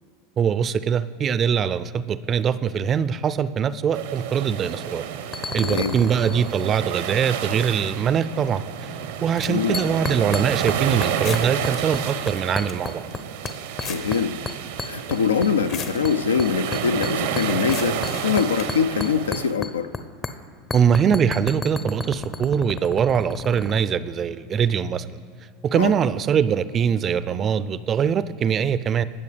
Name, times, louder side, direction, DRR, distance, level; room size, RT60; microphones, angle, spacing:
voice 1, 0.4-5.0 5.5-8.9 9.2-13.1 20.7-25.1 25.6-29.0, right 7 dB, 35° right, 15 dB, 0.4 m, -22 dB
sound 1, 3.9-19.5, right 8 dB, 70° right, 0.7 m, -30 dB
sound 2, 4.6-4.9 5.3-6.9 9.7-10.8 11.0-12.0 12.3-13.2 13.4-14.2 14.5-15.8 16.0-20.0 20.2-20.3 20.7-23.8, left 4 dB, 25° left, 0.6 m, -32 dB
voice 2, 5.6-6.0 9.5-10.0 13.9-14.4 14.9-19.9 25.7-25.9, left 6 dB, 85° left, 12 dB, 0.4 m, -23 dB
sound 3, 8.4-8.5 9.2-9.8 10.3-10.5 11.1-11.8 12.2-12.3 12.5-12.7 13.1-14.2 14.4-14.5 15.5-16.0 17.6-18.7, left 7 dB, 50° left, 0.9 m, -36 dB
18.0 x 6.7 x 3.3 m, 2.1 s
hypercardioid pair, 85°, 0 cm